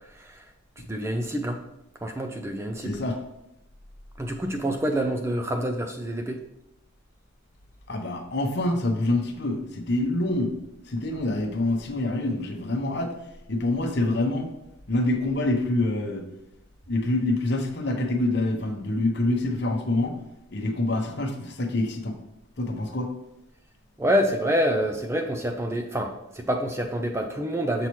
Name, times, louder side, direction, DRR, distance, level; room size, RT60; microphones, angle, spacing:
voice 1, 0.9-1.6 2.0-3.0 4.2-6.4 24.0-27.9, equal, 15° right, 4 dB, 0.4 m, -27 dB
voice 2, 2.8-3.2 7.9-10.5 10.9-13.1 13.5-14.5 14.9-16.2 16.9-20.2 20.5-22.1 22.6-23.1, left 2 dB, 50° left, 3 dB, 0.9 m, -26 dB
6.9 x 5.8 x 3.1 m, 0.86 s
head